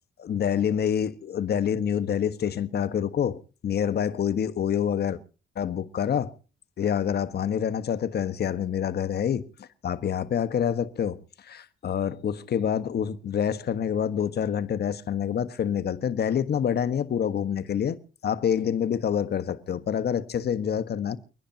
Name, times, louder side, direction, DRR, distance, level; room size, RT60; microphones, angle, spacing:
voice 1, 0.2-5.2 5.5-6.3 6.8-21.2, left 8 dB, 55° left, 1.4 m, -27 dB
29.5 x 10.0 x 2.9 m
cardioid pair, 90°, 20 cm